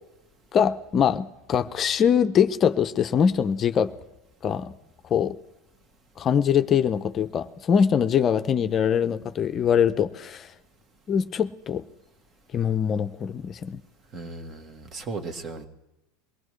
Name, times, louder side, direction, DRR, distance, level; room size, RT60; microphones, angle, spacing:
voice 1, 0.5-3.9 4.4-4.7 5.1-5.3 6.2-10.5 11.1-11.8 12.5-13.8, left 8 dB, 35° left, 0.6 m, -23 dB
voice 2, 14.1-15.7, right 3 dB, 35° right, 1.6 m, -36 dB
23.0 x 18.0 x 3.2 m
hypercardioid pair, 100°, 0 cm